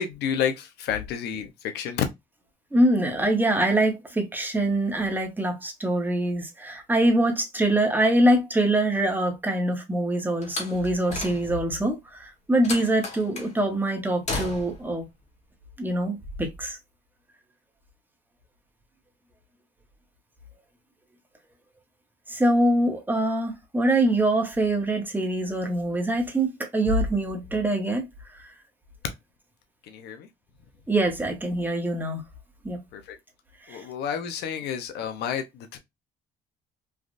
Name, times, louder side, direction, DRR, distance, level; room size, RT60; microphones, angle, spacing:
voice 1, 0.0-2.0 29.8-30.3 32.9-33.2 33.7-35.8, left 8 dB, 75° left, 0.7 m, -30 dB
voice 2, 2.7-15.0 15.8-16.8 22.3-28.1 30.9-32.2 32.6-32.8 33.7-33.8, right 1 dB, 10° right, 1.0 m, -24 dB
Slam, 10.4-11.8 12.6-13.5 14.3-14.9, left 3 dB, 40° left, 1.3 m, -34 dB
3.3 x 2.4 x 2.5 m
cardioid pair, 110°, 17 cm